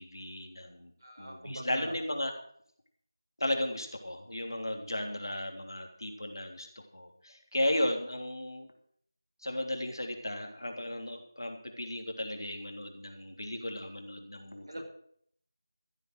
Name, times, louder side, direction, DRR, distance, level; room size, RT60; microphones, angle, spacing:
voice 1, 0.0-0.9 1.2-2.3 3.4-6.7 6.9-8.7 9.4-14.8, left 1 dB, 85° left, 3 dB, 3.3 m, -35 dB
voice 2, 1.0-1.9 14.7-14.8, right 1 dB, 60° right, -1 dB, 6.1 m, -42 dB
14.0 x 8.3 x 6.6 m, 0.63 s
figure-of-eight pair, 175°, 2 cm